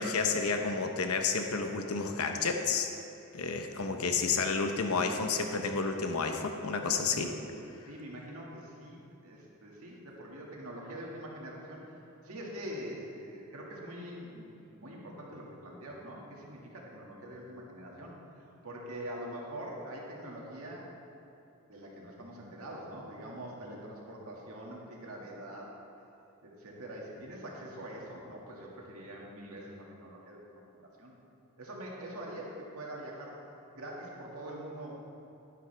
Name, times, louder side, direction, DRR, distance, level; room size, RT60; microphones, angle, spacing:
voice 1, 0.0-2.9 3.3-7.4, left 4 dB, 85° left, 5 dB, 0.8 m, -30 dB
voice 2, 7.9-14.5 14.7-20.9 21.7-25.7 26.4-31.1 31.6-33.4 33.7-35.0, right 1 dB, 85° right, -3 dB, 1.9 m, -44 dB
11.0 x 10.0 x 3.4 m, 2.9 s
head